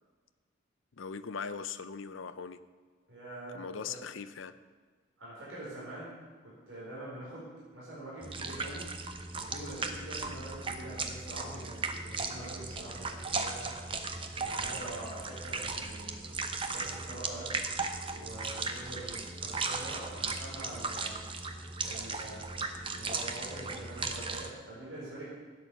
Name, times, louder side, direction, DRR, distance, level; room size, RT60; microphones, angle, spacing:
voice 1, 1.0-2.6 3.5-4.6, left 6 dB, 80° left, 11 dB, 0.6 m, -40 dB
voice 2, 3.1-4.0 5.2-6.1 6.4-8.9 9.3-13.8 14.3-17.5 18.1-21.2 21.8-22.5 22.9-25.3, right 1 dB, 85° right, -8 dB, 4.7 m, -45 dB
sound 1, 8.2-24.5, right 4 dB, 25° right, 0.9 m, -37 dB
12.5 x 9.3 x 7.0 m, 1.5 s
head